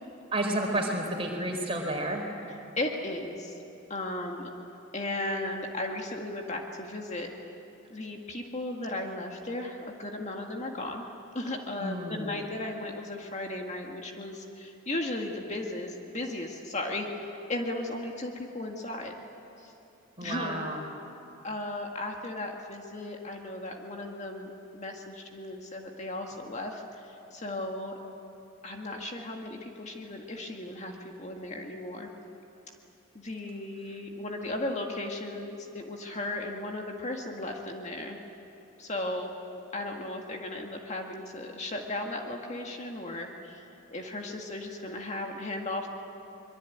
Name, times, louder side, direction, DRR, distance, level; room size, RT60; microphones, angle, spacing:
voice 1, 0.3-2.3 11.8-12.3 20.2-20.8, right 1 dB, 25° right, 1 dB, 4.2 m, -31 dB
voice 2, 2.8-3.6 3.9-4.5 4.9-7.3 7.9-11.0 11.3-19.2 19.6-19.7 20.2-20.7 21.4-27.9 28.6-32.1 33.1-38.2 38.8-39.3 39.7-45.9, left 2 dB, 35° left, 1 dB, 1.9 m, -36 dB
24.5 x 22.5 x 9.4 m, 2.9 s
head